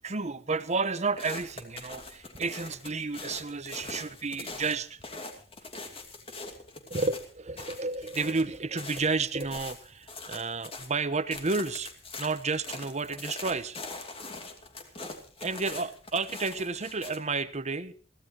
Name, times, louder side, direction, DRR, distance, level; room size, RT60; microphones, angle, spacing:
voice 1, 0.0-5.0 6.9-11.9 12.2-13.8 15.4-17.9, right 4 dB, 35° right, 13 dB, 1.0 m, -31 dB
sound 1, 1.2-10.9 11.3-17.2, left 3 dB, 30° left, 2.7 m, -43 dB
23.0 x 16.0 x 3.0 m, 0.42 s
head